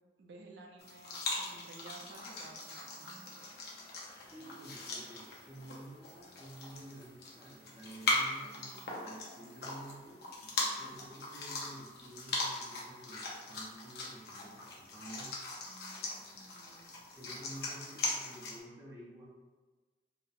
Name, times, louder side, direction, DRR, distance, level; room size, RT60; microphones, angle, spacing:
voice 1, 0.2-3.5 8.3-9.0 10.6-11.0 15.6-17.0, right 3 dB, 75° right, 0 dB, 0.4 m, -55 dB
sound 1, 0.8-18.6, left 2 dB, 60° left, 0.5 m, -40 dB
voice 2, 4.1-15.4 17.2-19.3, right 1 dB, 15° right, -5 dB, 0.5 m, -51 dB
2.8 x 2.0 x 2.3 m, 1.3 s
head